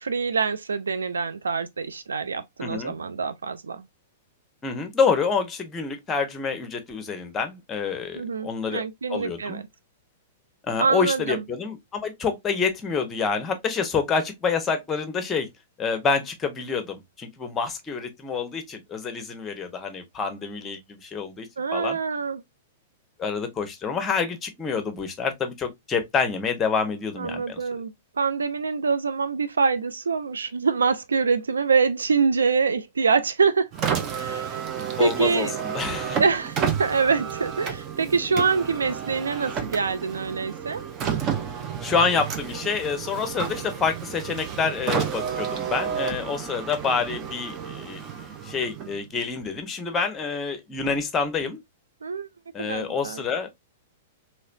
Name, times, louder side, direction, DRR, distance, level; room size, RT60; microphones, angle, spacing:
voice 1, 0.0-3.8 8.1-9.6 10.8-11.4 21.6-22.4 27.2-33.7 34.1-34.6 35.0-35.5 36.2-40.8 52.0-52.3 52.6-53.2, right 5 dB, 75° right, 0.4 m, -25 dB
voice 2, 2.6-3.0 4.6-8.8 9.1-9.6 10.7-15.5 15.8-22.0 23.2-27.6 35.0-36.2 41.8-48.1 48.4-51.6 52.5-53.5, left 5 dB, 20° left, 0.9 m, -27 dB
Car, 33.7-49.1, right 7 dB, 30° right, 0.7 m, -31 dB
3.1 x 3.0 x 2.5 m
figure-of-eight pair, 100°, 0 cm